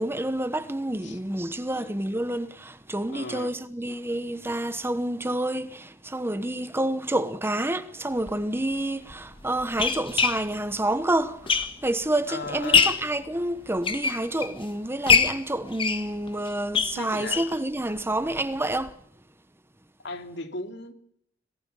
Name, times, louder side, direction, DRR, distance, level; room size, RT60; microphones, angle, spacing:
voice 1, 0.0-19.0, right 1 dB, 10° right, 1.0 m, -28 dB
voice 2, 3.1-3.5 12.3-13.0 16.9-17.4 20.0-20.9, left 2 dB, 65° left, 2.9 m, -36 dB
sound 1, 8.2-8.3 9.1-12.1 12.5-13.1 13.6-14.6 15.1-17.6 18.0-18.1 18.3-18.4 18.8-18.9, left 5 dB, 30° left, 1.6 m, -24 dB
26.5 x 20.0 x 5.5 m
head